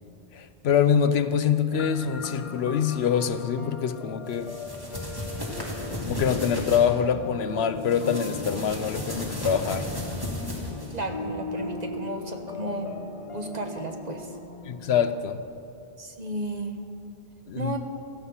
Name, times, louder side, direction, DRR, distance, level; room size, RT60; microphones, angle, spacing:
voice 1, 0.3-4.6 6.0-9.9 14.6-15.4 17.5-17.7, left 7 dB, 85° left, 11 dB, 1.0 m, -25 dB
sound 1, 1.7-15.3, left 3 dB, 35° left, 0.9 m, -39 dB
sound 2, 4.3-6.8 7.8-11.0, equal, 20° right, 2.8 m, -34 dB
voice 2, 10.9-14.3 16.0-16.8 17.5-17.8, right 2 dB, 45° right, 5 dB, 1.3 m, -34 dB
17.0 x 14.0 x 5.7 m, 2.7 s
omnidirectional pair, 1.0 m